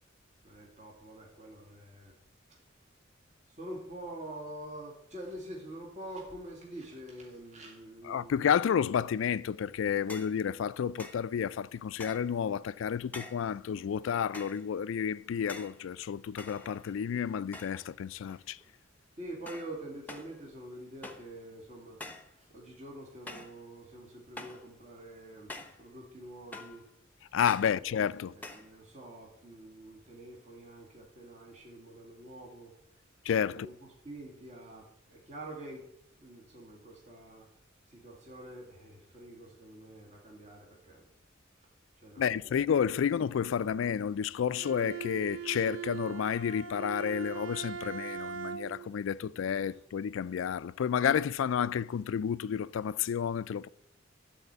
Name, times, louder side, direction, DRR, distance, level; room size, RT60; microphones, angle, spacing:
voice 1, 0.4-2.1 2.5-2.6 3.5-8.6 19.2-25.5 25.8-26.9 27.5-32.7 33.5-33.7 34.0-35.9 36.2-37.5 37.9-41.0 42.0-43.0 43.6-43.7 49.7-49.8, right 1 dB, 40° right, 2.0 m, -46 dB
voice 2, 8.1-18.6 27.3-28.3 33.3-33.7 42.2-53.7, left 8 dB, 75° left, 0.3 m, -31 dB
sound 1, 10.1-10.4 11.0-11.3 12.0-12.4 13.1-13.5 14.3-14.7 15.5-15.8 16.4-17.0 17.5-17.9 18.2-18.7 19.5-19.8 20.1-20.4 21.0-21.3 22.0-22.3 23.3-23.6 24.4-24.7 25.5-25.8 26.5-26.8 27.5-27.8 28.4-28.7, left 2 dB, 10° left, 0.9 m, -46 dB
Bowed string instrument, 44.6-48.9, right 8 dB, 75° right, 0.5 m, -40 dB
12.0 x 4.3 x 8.0 m
head